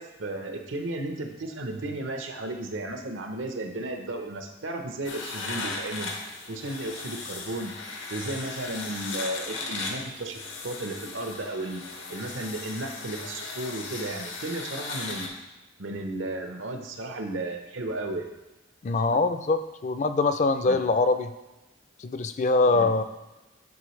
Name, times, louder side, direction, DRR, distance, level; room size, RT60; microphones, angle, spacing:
voice 1, 0.0-6.1 6.5-7.7 8.1-11.8 12.1-15.3 15.8-18.4 19.1-19.2 20.6-20.8 22.7-22.9, right 2 dB, 85° right, 4 dB, 0.8 m, -34 dB
sound 1, 5.0-15.3, left 3 dB, 80° left, 1.0 m, -37 dB
voice 2, 18.8-21.3 22.0-23.0, left 3 dB, 40° left, 9 dB, 0.4 m, -23 dB
9.8 x 4.0 x 3.2 m, 1.1 s
head